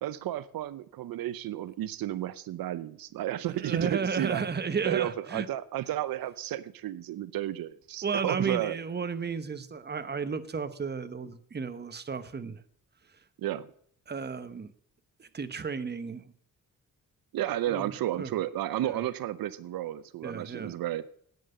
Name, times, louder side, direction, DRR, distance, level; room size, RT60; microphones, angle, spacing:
voice 1, 0.0-4.5 4.8-8.8 13.4-13.7 17.3-21.1, right 13 dB, 85° right, 16 dB, 0.7 m, -32 dB
voice 2, 3.5-5.5 8.0-12.6 14.1-14.7 15.2-16.2 17.7-18.3 18.8-19.0 20.2-20.7, right 5 dB, 30° right, 11 dB, 1.1 m, -33 dB
10.5 x 9.2 x 6.6 m, 0.63 s
cardioid pair, 100°, 34 cm